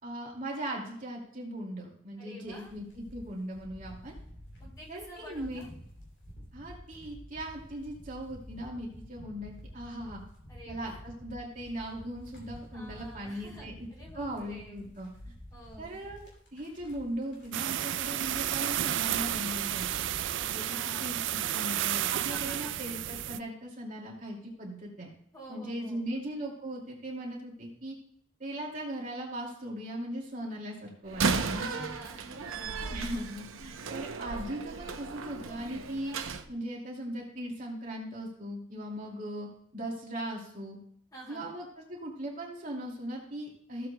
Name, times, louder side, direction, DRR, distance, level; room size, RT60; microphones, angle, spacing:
voice 1, 0.0-4.1 4.9-5.6 6.5-10.2 10.7-13.9 14.1-15.1 15.8-20.1 20.5-25.1 25.5-27.9 28.4-31.9 32.9-36.2 36.5-39.5 39.7-40.8 41.3-43.9, right 1 dB, 40° right, -2 dB, 2.3 m, -39 dB
voice 2, 2.2-2.7 4.6-5.7 10.5-11.0 12.7-14.9 15.5-16.0 20.3-21.2 22.3-22.8 25.3-26.1 31.5-33.1 41.1-41.5, right 1 dB, 20° left, -4 dB, 3.0 m, -48 dB
sound 1, 2.4-20.5, equal, 60° left, 3.1 m, -50 dB
sound 2, 17.5-23.4, right 12 dB, 65° right, 0.3 m, -32 dB
Slam, 31.1-36.4, right 4 dB, 85° right, 0.7 m, -34 dB
15.0 x 7.6 x 2.2 m, 0.65 s
head